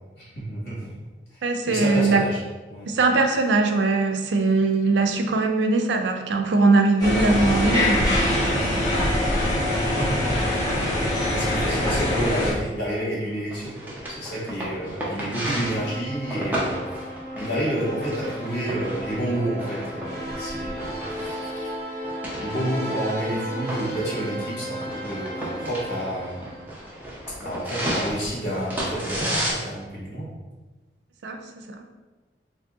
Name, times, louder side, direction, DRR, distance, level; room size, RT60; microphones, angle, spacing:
voice 1, 0.2-0.8 1.6-2.4 2.7-2.9 10.0-10.3 11.3-17.0 17.3-21.7 22.4-26.4 27.4-30.2, right 1 dB, 85° left, -6 dB, 1.5 m, -29 dB
voice 2, 1.4-2.2 2.9-8.2 22.6-22.7 31.2-31.4 31.7-31.8, right 3 dB, 85° right, 5 dB, 0.4 m, -21 dB
sound 1, 7.0-12.5, left 1 dB, 20° left, 0.9 m, -23 dB
sound 2, 13.5-29.5, right 1 dB, 10° right, 0.5 m, -34 dB
sound 3, 15.7-27.0, equal, 45° left, 1.4 m, -35 dB
2.8 x 2.7 x 3.5 m, 1.2 s
head